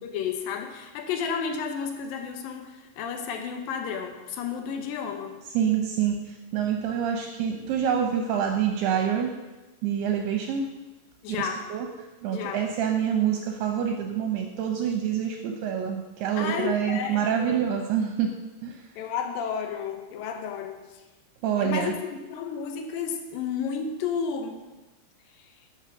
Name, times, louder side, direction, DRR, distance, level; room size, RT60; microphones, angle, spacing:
voice 1, 0.0-5.3 11.2-11.7 12.3-12.6 16.4-17.7 19.0-20.8 21.6-24.6, left 6 dB, 70° left, 5 dB, 2.3 m, -32 dB
voice 2, 5.5-9.3 9.8-10.7 11.4-11.9 12.2-18.3 18.6-18.9 21.4-22.0, right 8 dB, 75° right, 3 dB, 2.6 m, -26 dB
11.5 x 7.2 x 6.3 m, 1.1 s
omnidirectional pair, 5.1 m